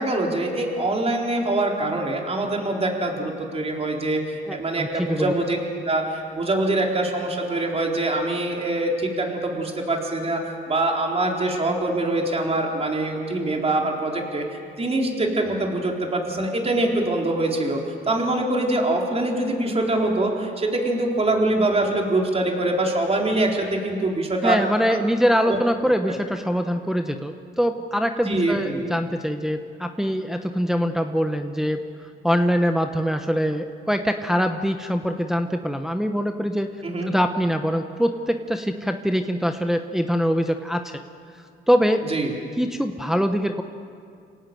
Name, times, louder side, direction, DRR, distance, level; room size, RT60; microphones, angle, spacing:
voice 1, 0.0-5.6 5.9-10.4 10.7-17.8 18.1-24.6 24.9-25.0 25.4-25.6 28.2-28.9 36.8-37.1 42.1-42.3, right 2 dB, 30° right, 0 dB, 4.2 m, -24 dB
voice 2, 4.5-5.3 24.4-31.8 32.2-36.7 37.1-41.0 41.7-42.0 42.6-43.6, equal, ahead, 6 dB, 1.1 m, -23 dB
27.0 x 18.0 x 7.9 m, 2.3 s
cardioid pair, 90°, 20 cm